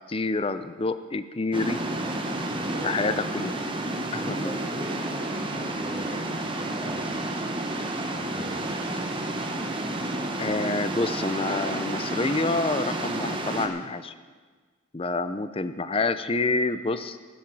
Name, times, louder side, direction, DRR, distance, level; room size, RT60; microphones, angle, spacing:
voice 1, 0.1-1.8 2.8-3.6 4.1-4.4 10.4-14.1 14.9-17.2, left 3 dB, 30° left, 12 dB, 0.5 m, -27 dB
sound 1, 1.5-13.7, right 1 dB, 25° right, 1.1 m, -30 dB
voice 2, 2.5-3.2 4.2-7.7 8.1-8.7, equal, 5° left, -9 dB, 2.9 m, -41 dB
15.5 x 12.0 x 4.7 m, 1.5 s
head